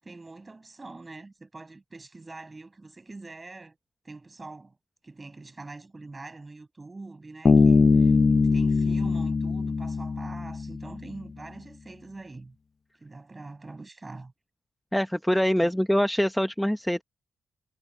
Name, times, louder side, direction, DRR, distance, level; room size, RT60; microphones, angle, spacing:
voice 1, 0.0-3.8 4.0-4.8 5.0-8.2 8.5-12.6 13.0-14.3 15.6-15.8, right 3 dB, 25° right, 6.9 m, -44 dB
Bass guitar, 7.5-11.0, left 4 dB, 45° left, 0.5 m, -21 dB
voice 2, 14.9-17.0, equal, 5° left, 0.9 m, -24 dB
cardioid pair, 75°, 0 cm